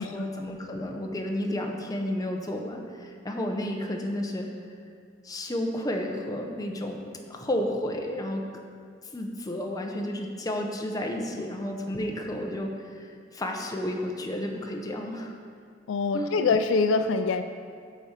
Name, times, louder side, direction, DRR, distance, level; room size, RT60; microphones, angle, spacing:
voice 1, 0.0-4.5 5.2-7.0 7.3-8.4 9.1-15.4 16.1-16.3, left 1 dB, 20° left, 2 dB, 0.7 m, -32 dB
voice 2, 15.9-17.4, left 4 dB, 70° left, 8 dB, 0.3 m, -24 dB
8.2 x 4.2 x 6.5 m, 2.1 s
head